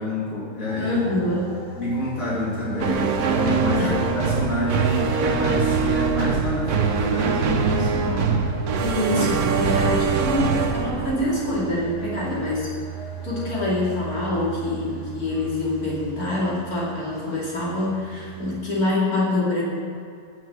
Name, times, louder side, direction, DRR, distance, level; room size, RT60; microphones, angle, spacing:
voice 1, 0.0-1.0 1.7-8.5, left 2 dB, 65° left, -6 dB, 3.0 m, -28 dB
sound 1, 0.6-18.6, right 8 dB, 40° left, 2.6 m, -37 dB
voice 2, 0.8-1.6 3.8-4.0 8.8-12.7 13.2-19.6, left 2 dB, 85° left, -6 dB, 3.2 m, -25 dB
sound 2, 2.8-12.2, right 5 dB, 85° right, 1.4 m, -23 dB
9.6 x 7.5 x 7.9 m, 2.4 s
omnidirectional pair, 1.5 m